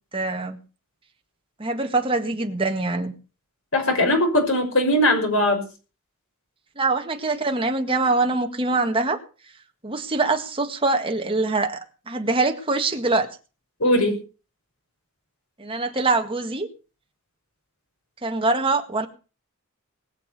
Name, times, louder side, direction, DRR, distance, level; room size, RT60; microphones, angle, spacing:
voice 1, 0.1-0.6 1.6-3.1 6.8-9.2 9.8-13.3 15.6-16.7 18.2-19.1, right 3 dB, 25° right, 4 dB, 1.8 m, -24 dB
voice 2, 3.7-5.6 13.8-14.2, left 1 dB, 65° left, 3 dB, 5.9 m, -20 dB
21.0 x 7.3 x 6.8 m, 0.36 s
head